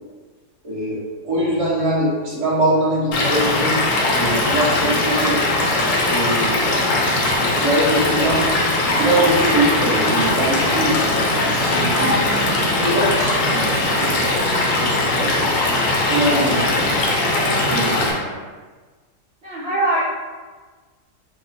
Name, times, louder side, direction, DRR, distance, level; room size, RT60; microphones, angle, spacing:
voice 1, 0.6-1.0 1.2-3.8 4.1-5.4 6.0-6.9 7.2-8.5 8.9-11.1 11.4-12.1 12.7-15.5 16.1-17.1 17.7-18.3, right 1 dB, 25° right, -7 dB, 0.9 m, -23 dB
Stream / Liquid, 3.1-18.1, left 2 dB, 65° left, 0.9 m, -20 dB
voice 2, 11.9-12.6 19.4-20.0, right 2 dB, 55° right, -8 dB, 0.7 m, -23 dB
2.9 x 2.3 x 4.1 m, 1.4 s
omnidirectional pair, 1.7 m